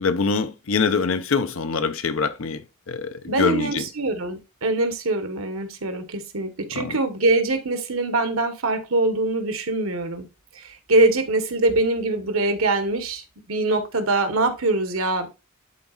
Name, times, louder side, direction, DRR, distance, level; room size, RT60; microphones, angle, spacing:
voice 1, 0.0-3.8 6.7-7.0, left 5 dB, 70° left, 0.7 m, -24 dB
voice 2, 3.3-10.3 10.5-15.3, right 2 dB, 80° right, 1.3 m, -23 dB
11.0 x 4.1 x 2.4 m
head